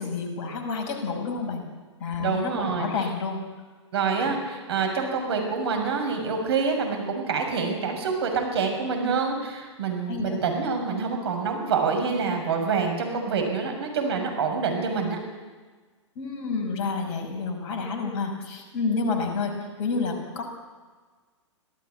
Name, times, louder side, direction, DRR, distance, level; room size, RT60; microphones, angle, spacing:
voice 1, 0.0-1.6 2.0-3.4 10.1-10.4 16.2-20.4, left 4 dB, 40° left, 3 dB, 5.4 m, -29 dB
voice 2, 2.2-2.9 3.9-15.2, right 5 dB, 55° right, 3 dB, 6.5 m, -26 dB
26.5 x 17.0 x 8.3 m, 1.4 s
figure-of-eight pair, 110°, 16 cm